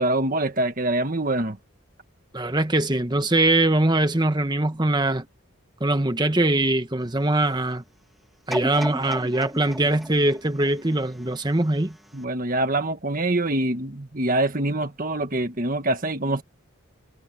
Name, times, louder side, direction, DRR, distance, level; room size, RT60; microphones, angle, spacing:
voice 1, 0.0-1.6 12.1-16.4, right 2 dB, 40° right, 1.6 m, -25 dB
voice 2, 2.3-5.3 5.8-7.8 8.5-12.0, right 2 dB, 20° right, 1.2 m, -22 dB
sound 1, 8.5-11.6 12.1-12.2, equal, ahead, 1.4 m, -34 dB
head